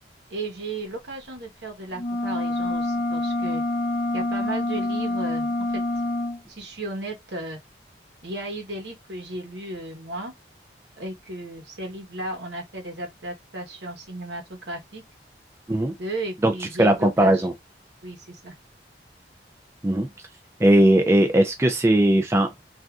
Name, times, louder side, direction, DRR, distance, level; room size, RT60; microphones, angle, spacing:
voice 1, 0.3-3.6 4.1-5.8 6.5-7.6 8.2-10.3 11.0-15.0 16.0-17.5 18.0-18.5, right 1 dB, 75° right, 1.1 m, -35 dB
sound 1, 1.9-6.4, left 1 dB, 30° left, 0.7 m, -26 dB
voice 2, 16.8-17.5 19.8-20.1 20.6-22.5, right 1 dB, 15° right, 0.4 m, -18 dB
3.5 x 2.6 x 2.3 m
head